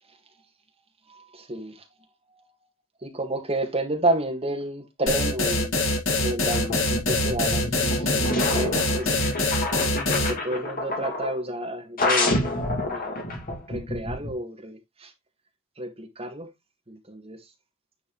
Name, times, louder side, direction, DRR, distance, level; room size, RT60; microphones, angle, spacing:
voice 1, 1.1-1.9 2.3-2.5 3.0-5.8 6.2-9.5 10.1-12.3 12.8-13.2 13.7-15.1 15.8-16.5 16.9-17.5, right 1 dB, 30° right, 1.9 m, -31 dB
sound 1, 5.1-10.3, left 2 dB, 70° left, 2.0 m, -24 dB
sound 2, 6.4-11.4 12.0-14.3, left 2 dB, 45° left, 2.4 m, -28 dB
9.7 x 4.6 x 3.2 m
head